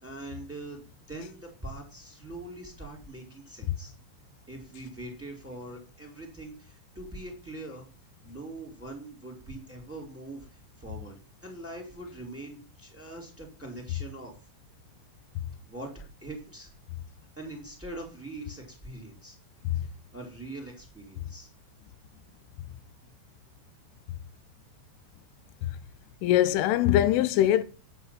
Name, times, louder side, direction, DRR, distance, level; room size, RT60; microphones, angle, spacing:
voice 1, 0.0-3.9 4.5-7.8 8.2-10.5 10.8-11.2 11.4-14.3 15.7-15.9 16.2-16.7 17.4-19.4 19.8-19.9 20.1-21.5, right 2 dB, 5° right, 3.8 m, -42 dB
voice 2, 26.2-27.6, left 13 dB, 90° left, 3.4 m, -22 dB
10.0 x 8.1 x 7.6 m
omnidirectional pair, 5.5 m